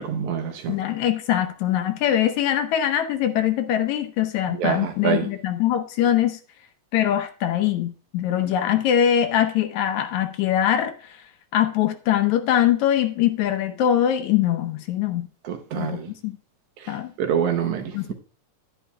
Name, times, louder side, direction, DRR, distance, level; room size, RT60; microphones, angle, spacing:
voice 1, 0.0-0.8 4.6-5.3 15.4-16.1 16.8-17.9, right 7 dB, 75° right, 2.3 m, -26 dB
voice 2, 0.7-6.4 6.9-10.9 11.5-15.3 15.7-16.4 16.9-17.1 17.9-18.1, left 10 dB, 75° left, 2.1 m, -22 dB
10.0 x 10.0 x 2.2 m
omnidirectional pair, 3.5 m